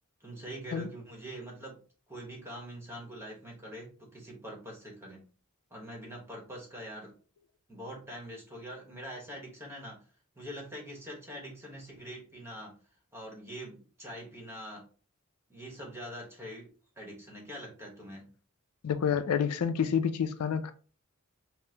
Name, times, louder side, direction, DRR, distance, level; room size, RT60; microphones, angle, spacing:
voice 1, 0.2-1.8 2.1-5.2 5.7-7.1 7.7-10.0 10.4-12.8 13.1-14.9 15.5-18.3, equal, 10° right, 1.1 m, -44 dB
voice 2, 18.8-20.7, left 7 dB, 90° left, 0.4 m, -28 dB
5.4 x 2.0 x 2.8 m
head